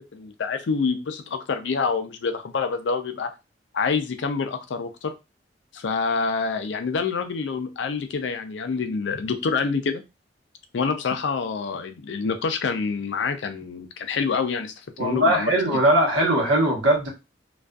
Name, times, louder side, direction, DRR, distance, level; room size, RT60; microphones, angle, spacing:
voice 1, 0.1-3.3 3.7-5.1 5.7-10.0 10.7-14.7 15.0-15.5, left 5 dB, 75° left, 8 dB, 0.4 m, -27 dB
voice 2, 15.0-17.1, right 1 dB, 80° right, -1 dB, 1.0 m, -20 dB
2.5 x 2.3 x 2.3 m, 0.26 s
head